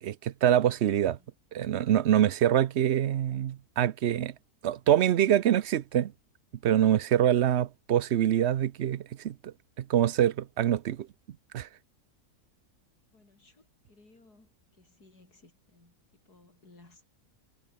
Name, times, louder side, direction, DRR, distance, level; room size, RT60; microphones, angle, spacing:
voice 1, 0.0-1.2 1.5-4.3 4.6-6.1 6.6-11.1 11.5-11.7, right 11 dB, 55° right, 0.8 m, -25 dB
voice 2, 13.1-17.0, left 2 dB, 90° left, 5.9 m, -60 dB
omnidirectional pair, 1.6 m